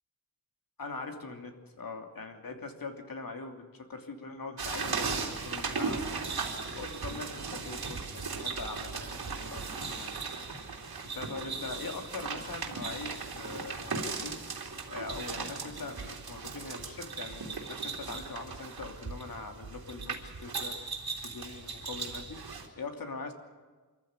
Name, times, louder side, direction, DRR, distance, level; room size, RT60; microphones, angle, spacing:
voice 1, 0.8-10.3 11.0-14.6 14.9-21.0 21.2-23.3, left 3 dB, 65° left, 4 dB, 2.9 m, -42 dB
sound 1, 4.6-22.7, right 4 dB, 75° right, 3.1 m, -37 dB
24.5 x 14.5 x 9.6 m, 1.4 s
wide cardioid pair, 95°, 37 cm